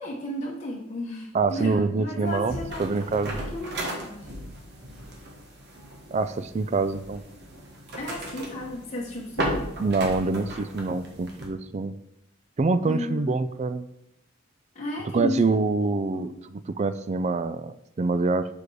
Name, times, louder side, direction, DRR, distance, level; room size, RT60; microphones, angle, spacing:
voice 1, 0.0-2.9 3.3-4.3 8.0-9.6 12.8-13.4 14.7-15.5 16.1-16.3, left 1 dB, 35° left, -3 dB, 1.0 m, -33 dB
voice 2, 1.3-3.4 6.1-7.2 9.8-11.9 12.6-13.9 15.1-18.5, right 3 dB, 35° right, 13 dB, 0.3 m, -26 dB
sound 1, 2.3-11.5, right 1 dB, 55° right, 1.5 m, -36 dB
6.4 x 4.9 x 4.7 m, 0.83 s
head